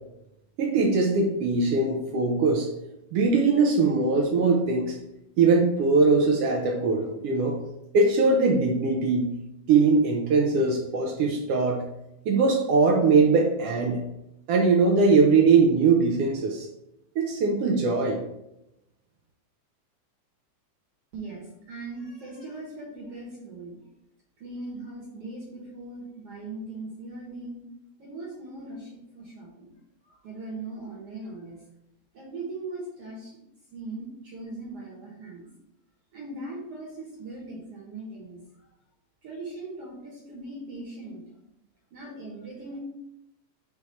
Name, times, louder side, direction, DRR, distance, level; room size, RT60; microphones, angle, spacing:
voice 1, 0.6-2.7 3.1-5.0 5.4-7.6 7.9-9.3 9.7-11.8 12.2-14.0 14.5-16.7 17.1-18.2, right 4 dB, 75° right, 1 dB, 1.4 m, -21 dB
voice 2, 21.1-23.8 24.4-27.6 28.0-29.7 30.0-31.6 32.1-33.4 33.7-35.5 36.1-38.4 39.2-41.2 41.9-42.8, right 2 dB, 55° right, -3 dB, 2.1 m, -39 dB
4.9 x 4.8 x 4.2 m, 0.85 s
omnidirectional pair, 3.5 m